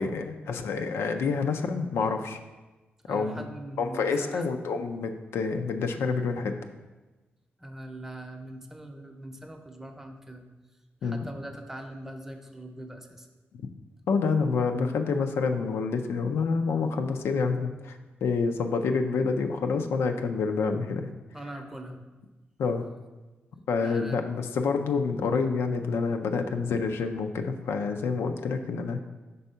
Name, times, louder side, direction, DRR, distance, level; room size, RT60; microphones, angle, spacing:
voice 1, 0.0-2.4 3.1-3.5 3.8-6.5 11.0-11.2 14.1-21.1 22.6-22.8 23.7-29.1, left 4 dB, 85° left, 6 dB, 0.4 m, -28 dB
voice 2, 3.1-4.5 7.6-10.5 11.0-13.3 21.3-22.2 23.8-24.4, right 1 dB, 10° right, 5 dB, 0.7 m, -42 dB
5.4 x 3.5 x 5.5 m, 1.2 s
cardioid pair, 80°, 4 cm